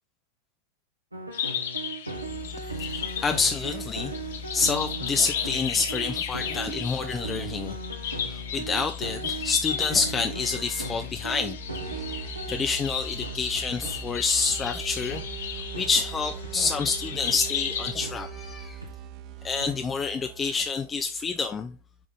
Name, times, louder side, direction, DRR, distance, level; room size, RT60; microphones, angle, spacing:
sound 1, 1.1-12.7 13.2-13.4 13.8-14.0 14.5-14.6 15.1-15.3 15.7-15.9 16.4-16.5 17.2-17.4 18.0-18.2 18.8-18.9 19.6-19.7, right 4 dB, 85° right, 1.4 m, -37 dB
sound 2, 1.3-17.9, left 8 dB, 60° left, 1.1 m, -35 dB
voice 1, 2.4-11.6 11.9-12.1 12.5-15.2 15.8-18.8 19.4-21.7, left 4 dB, 20° left, 0.5 m, -28 dB
sound 3, 11.5-21.0, right 12 dB, 40° right, 0.5 m, -41 dB
7.8 x 4.9 x 3.9 m
figure-of-eight pair, 90°, 0 cm